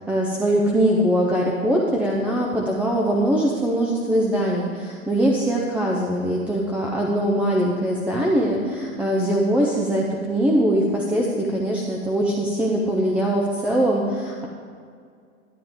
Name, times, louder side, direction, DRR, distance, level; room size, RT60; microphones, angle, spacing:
voice 1, 0.1-14.5, right 1 dB, 5° right, -2 dB, 0.4 m, -22 dB
12.0 x 8.6 x 3.5 m, 2.2 s
hypercardioid pair, 120°, 42 cm